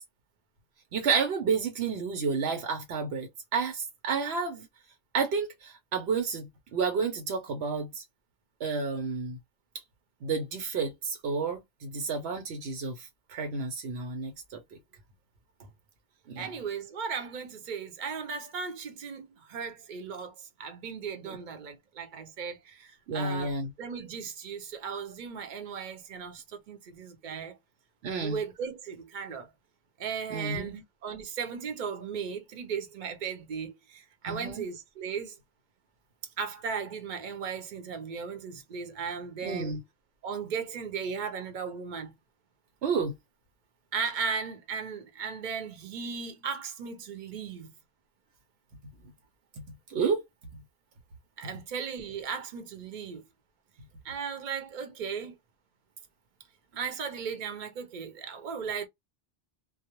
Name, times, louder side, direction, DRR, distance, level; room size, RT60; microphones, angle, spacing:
voice 1, 0.9-4.7 5.1-8.0 8.6-9.4 10.2-14.6 16.3-16.5 21.2-21.4 23.1-23.7 28.0-28.4 30.3-30.8 34.3-34.6 39.4-39.8 42.8-43.1 49.9-50.2, right 5 dB, 85° right, 1.0 m, -31 dB
voice 2, 16.4-27.6 28.2-29.5 30.0-35.4 36.4-39.8 40.2-42.1 43.9-47.7 51.4-53.2 54.0-55.4 56.7-58.9, right 6 dB, 55° right, 0.7 m, -36 dB
2.2 x 2.0 x 2.8 m
omnidirectional pair, 1.1 m